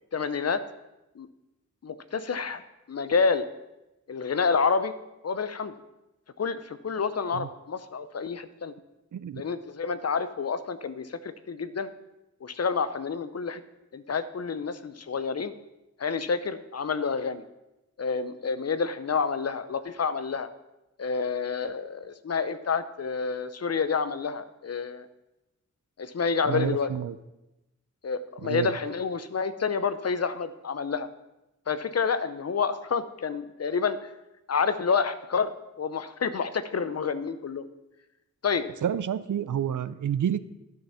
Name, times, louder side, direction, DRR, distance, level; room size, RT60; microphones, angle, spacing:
voice 1, 0.1-0.6 1.2-1.3 1.8-2.6 2.9-3.4 4.1-4.9 5.2-5.7 6.4-8.7 9.3-11.9 12.4-13.6 13.9-15.5 16.0-17.4 18.0-20.5 21.0-25.1 26.0-26.9 28.0-31.1 31.7-34.1 34.5-35.5 35.8-37.6 38.4-38.7, left 5 dB, 55° left, 13 dB, 0.7 m, -28 dB
voice 2, 9.1-9.4 26.5-27.2 28.4-28.7 38.8-40.4, right 9 dB, 90° right, 15 dB, 0.5 m, -29 dB
12.0 x 6.7 x 5.6 m, 0.95 s
wide cardioid pair, 90°, 30 cm